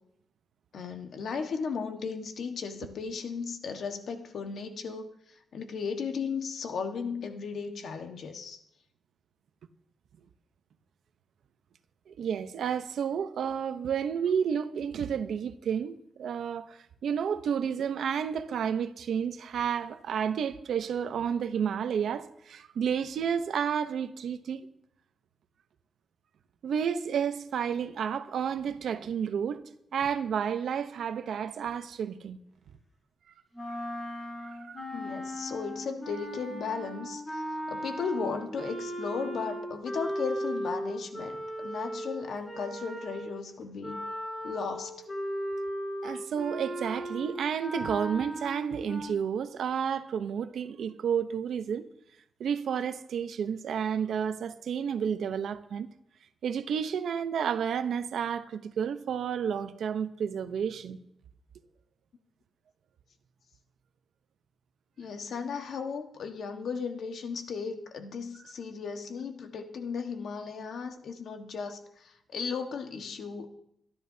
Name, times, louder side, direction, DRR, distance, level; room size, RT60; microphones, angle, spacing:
voice 1, 0.7-5.1 5.5-8.6 34.9-44.1 44.4-44.9 65.0-73.5, left 5 dB, 70° left, 1.5 m, -36 dB
voice 2, 12.1-24.7 26.6-29.6 29.9-32.4 33.7-33.8 34.4-34.8 46.0-51.9 52.4-55.9 56.4-61.0, right 7 dB, 75° right, 0.8 m, -31 dB
sound 1, 33.5-43.4 43.8-49.0, equal, 25° left, 4.8 m, -37 dB
24.0 x 11.5 x 2.8 m
wide cardioid pair, 135°, 0 cm